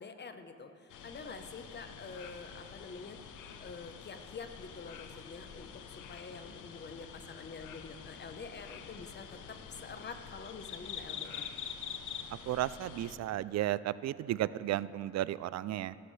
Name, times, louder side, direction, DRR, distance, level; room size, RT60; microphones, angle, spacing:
voice 1, 0.0-3.2 3.6-11.5, left 4 dB, 35° left, 8 dB, 1.0 m, -47 dB
sound 1, 0.9-13.2, left 7 dB, 80° left, 0.9 m, -46 dB
voice 2, 12.4-16.0, right 13 dB, 60° right, 17 dB, 0.4 m, -34 dB
18.5 x 13.0 x 3.3 m, 2.5 s
cardioid pair, 90°, 30 cm